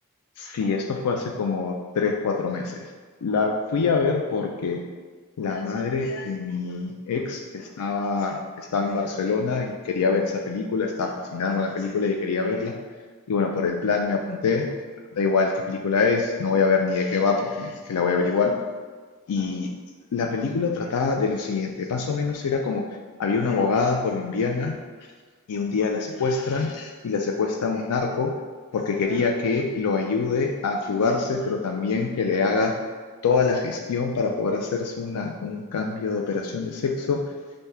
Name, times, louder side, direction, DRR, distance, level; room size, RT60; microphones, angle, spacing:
voice 1, 0.4-2.9 3.2-4.8 5.4-12.7 13.3-14.7 15.1-18.5 19.3-19.7 20.1-22.8 23.2-24.7 25.5-28.3 28.7-32.7 33.2-37.2, left 4 dB, 85° left, 2 dB, 0.4 m, -25 dB
5.5 x 2.7 x 3.3 m, 1.4 s
head